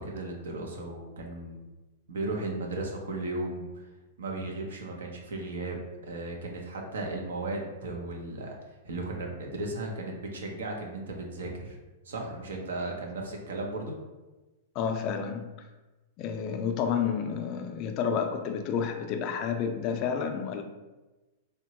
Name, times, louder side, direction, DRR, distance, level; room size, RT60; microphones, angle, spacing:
voice 1, 0.0-1.6 2.1-3.9 4.2-8.6 8.8-11.8 12.0-13.9, right 2 dB, 85° right, 1 dB, 0.6 m, -35 dB
voice 2, 14.8-15.5 16.2-20.6, left 7 dB, 40° left, 6 dB, 0.4 m, -30 dB
2.9 x 2.2 x 2.8 m, 1.1 s
hypercardioid pair, 130°, 0 cm